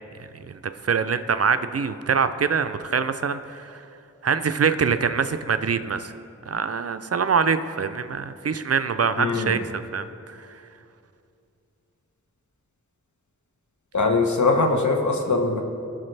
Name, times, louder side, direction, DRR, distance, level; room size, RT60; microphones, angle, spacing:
voice 1, 0.2-3.8 4.2-6.1 6.5-10.6, right 6 dB, 50° right, 11 dB, 0.5 m, -24 dB
voice 2, 9.2-9.5 13.9-15.6, left 3 dB, 70° left, 3 dB, 1.1 m, -21 dB
17.0 x 6.2 x 3.3 m, 2.6 s
wide cardioid pair, 55°, 31 cm